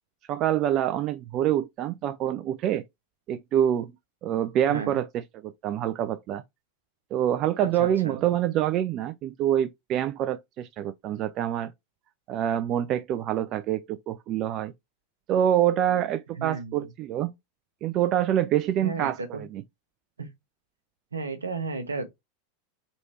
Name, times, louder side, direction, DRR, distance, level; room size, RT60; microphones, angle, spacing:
voice 1, 0.3-2.8 3.3-3.9 4.2-6.4 7.1-11.7 12.3-14.7 15.3-17.3 17.8-19.6, right 11 dB, 40° right, 0.3 m, -26 dB
voice 2, 7.8-8.2 16.4-16.9 18.8-19.4 20.2-20.3 21.1-22.1, right 4 dB, 80° right, 0.8 m, -33 dB
3.2 x 3.0 x 2.8 m
figure-of-eight pair, 85°, 0 cm